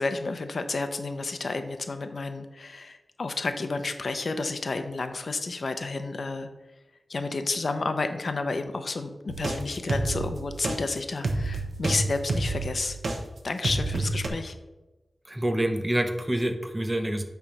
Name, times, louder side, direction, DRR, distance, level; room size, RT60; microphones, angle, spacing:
voice 1, 0.0-6.5 7.1-13.0 13.4-14.5, left 3 dB, 65° left, 8 dB, 0.7 m, -31 dB
sound 1, 9.3-13.2 13.6-14.3, right 2 dB, 75° right, 0.9 m, -29 dB
voice 2, 15.3-17.2, right 1 dB, 15° right, 6 dB, 0.7 m, -27 dB
8.6 x 3.4 x 5.3 m, 1.1 s
wide cardioid pair, 105°, 0 cm